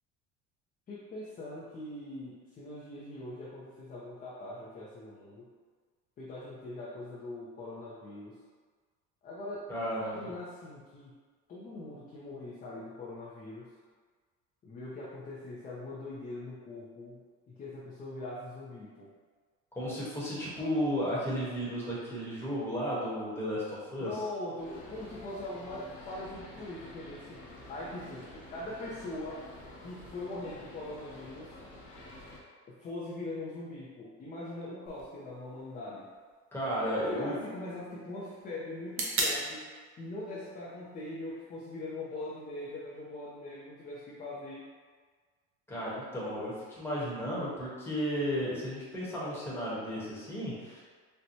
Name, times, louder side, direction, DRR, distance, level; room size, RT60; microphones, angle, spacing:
voice 1, 0.9-5.5 6.2-8.4 9.2-11.1 11.5-13.7 14.6-19.1 24.0-29.4 29.8-31.6 32.7-36.1 36.8-39.6 40.0-44.7, left 2 dB, 25° left, -7 dB, 0.5 m, -41 dB
voice 2, 9.7-10.3 19.7-24.1 36.5-37.4 45.7-50.8, equal, 5° left, -8 dB, 1.0 m, -34 dB
sound 1, 24.6-32.4, left 2 dB, 65° left, 0.9 m, -49 dB
sound 2, 34.9-42.8, right 2 dB, 40° right, 0.7 m, -41 dB
4.4 x 2.2 x 2.7 m, 1.5 s
cardioid pair, 140°, 33 cm